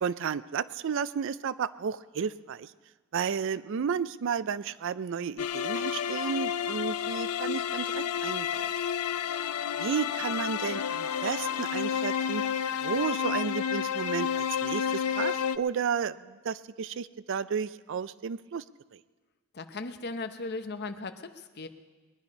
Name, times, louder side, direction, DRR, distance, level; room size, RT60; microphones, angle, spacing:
voice 1, 0.0-2.7 3.1-8.7 9.8-12.4 12.8-18.6 18.9-19.0, right 6 dB, 60° right, 17 dB, 0.4 m, -32 dB
sound 1, 5.4-15.6, left 8 dB, 85° left, 0.5 m, -30 dB
voice 2, 19.5-21.7, left 3 dB, 45° left, 9 dB, 0.8 m, -37 dB
21.0 x 10.5 x 5.4 m, 1.3 s
head